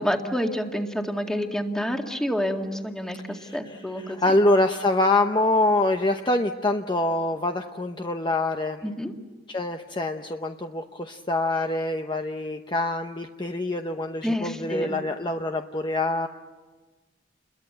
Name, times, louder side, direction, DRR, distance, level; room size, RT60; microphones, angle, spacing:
voice 1, 0.0-4.2 8.8-9.1 14.2-14.9, equal, 5° left, 3 dB, 2.0 m, -28 dB
voice 2, 3.3-8.8 9.5-16.3, left 2 dB, 25° left, 5 dB, 0.9 m, -25 dB
29.5 x 22.0 x 7.9 m, 1.3 s
head